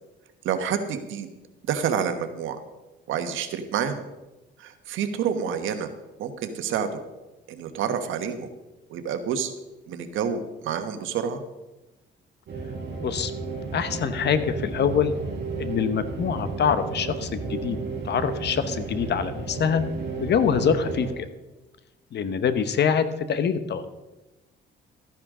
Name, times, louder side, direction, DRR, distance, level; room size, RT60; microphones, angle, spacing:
voice 1, 0.4-1.3 1.7-2.6 3.1-4.0 4.6-5.9 6.2-7.0 7.5-8.5 8.9-9.5 9.9-11.4, right 7 dB, 85° right, 8 dB, 1.3 m, -28 dB
sound 1, 12.5-21.1, right 4 dB, 60° right, 4.7 m, -33 dB
voice 2, 13.7-15.1 15.6-17.8 18.0-19.8 20.2-21.3 22.1-23.8, left 7 dB, 60° left, 12 dB, 1.0 m, -24 dB
13.5 x 10.5 x 3.8 m, 1.1 s
cardioid pair, 90°, 20 cm